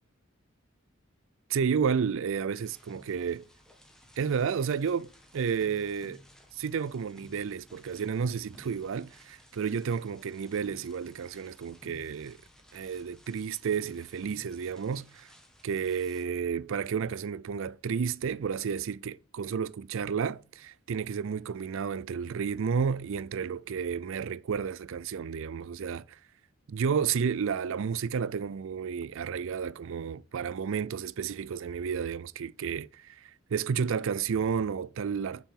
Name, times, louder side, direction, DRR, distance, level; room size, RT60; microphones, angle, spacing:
voice 1, 1.5-3.4 4.2-6.2 6.5-12.4 12.7-15.3 15.6-26.2 26.7-35.4, right 6 dB, 70° right, 0.4 m, -31 dB
sound 1, 2.6-16.2, left 1 dB, 5° left, 1.8 m, -56 dB
7.1 x 5.6 x 7.4 m
head